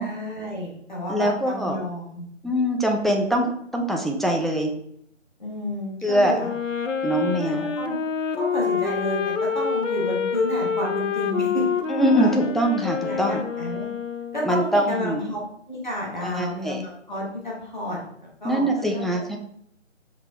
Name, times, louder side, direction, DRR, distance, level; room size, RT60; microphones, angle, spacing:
voice 1, 0.0-2.2 5.4-6.5 7.4-8.0 8.4-11.6 12.2-12.3 13.0-13.9 14.3-15.4 15.7-19.2, left 1 dB, 35° left, -3 dB, 1.2 m, -31 dB
voice 2, 1.1-1.8 2.4-4.7 6.0-6.4 7.0-7.7 11.9-13.4 14.4-15.2 16.2-16.8 18.4-19.4, right 1 dB, ahead, 0 dB, 0.3 m, -23 dB
Wind instrument woodwind instrument, 6.3-14.7, left 6 dB, 75° left, 0.6 m, -27 dB
5.8 x 2.7 x 3.2 m, 0.70 s
figure-of-eight pair, 175°, 38 cm